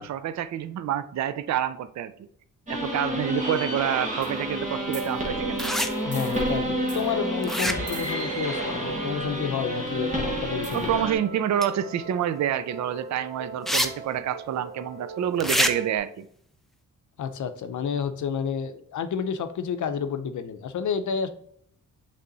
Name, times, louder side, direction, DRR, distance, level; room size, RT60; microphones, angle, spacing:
voice 1, 0.0-2.3 2.7-5.7 10.7-16.3, right 10 dB, 55° right, 13 dB, 0.4 m, -28 dB
sound 1, 2.7-11.1, equal, 20° right, 1.4 m, -30 dB
sound 2, 5.0-16.0, right 2 dB, 85° right, 1.7 m, -38 dB
sound 3, 5.6-5.9 7.4-8.0 11.6-11.7 13.7-13.9 14.2-14.3 15.4-15.7, equal, ahead, 0.4 m, -25 dB
voice 2, 6.0-10.9 17.2-21.3, left 7 dB, 60° left, 10 dB, 0.6 m, -30 dB
8.2 x 3.4 x 4.0 m, 0.65 s
wide cardioid pair, 165°, 33 cm